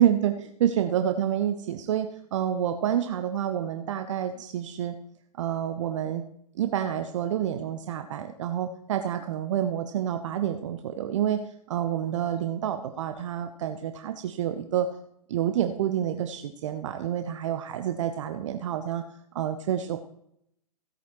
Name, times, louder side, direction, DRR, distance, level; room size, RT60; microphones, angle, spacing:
voice 1, 0.0-5.0 5.4-6.2 6.6-14.9 15.3-19.0 19.3-20.0, right 10 dB, 50° right, 8 dB, 0.7 m, -28 dB
16.0 x 9.1 x 3.0 m, 0.75 s
figure-of-eight pair, 115°, 20 cm